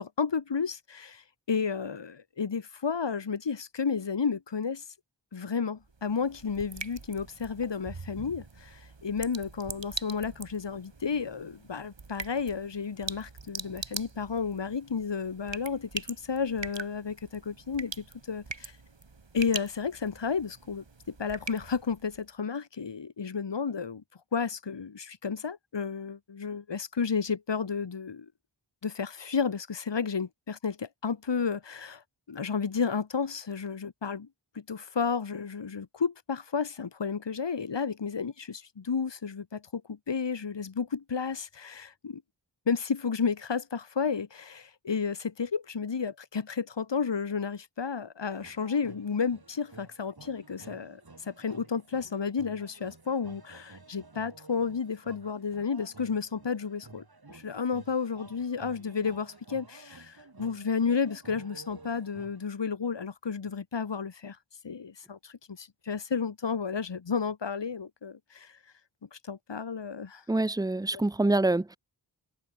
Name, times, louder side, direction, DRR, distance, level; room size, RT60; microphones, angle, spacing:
voice 1, 0.0-4.8 5.3-18.8 19.3-24.0 24.3-28.3 28.8-34.3 34.5-42.2 42.7-57.0 57.3-64.4 64.6-68.6 69.1-70.2 70.9-71.0, left 5 dB, 65° left, 1.6 m, -32 dB
sound 1, 5.8-22.3, right 4 dB, 70° right, 5.5 m, -43 dB
sound 2, 48.2-62.5, right 3 dB, 55° right, 6.3 m, -52 dB
voice 2, 70.3-71.8, right 2 dB, 10° right, 0.6 m, -26 dB
open air
wide cardioid pair, 60°, 45 cm